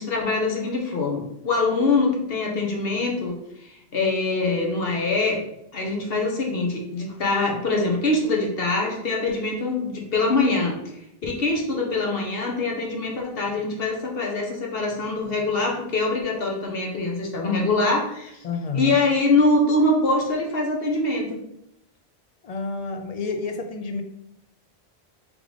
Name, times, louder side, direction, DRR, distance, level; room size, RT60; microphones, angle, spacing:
voice 1, 0.0-5.4 5.7-18.4 18.7-21.4, left 2 dB, 70° left, 0 dB, 1.1 m, -24 dB
voice 2, 18.4-19.0 22.4-24.0, left 4 dB, 50° left, 5 dB, 0.5 m, -29 dB
3.7 x 3.4 x 3.2 m, 0.76 s
omnidirectional pair, 1.1 m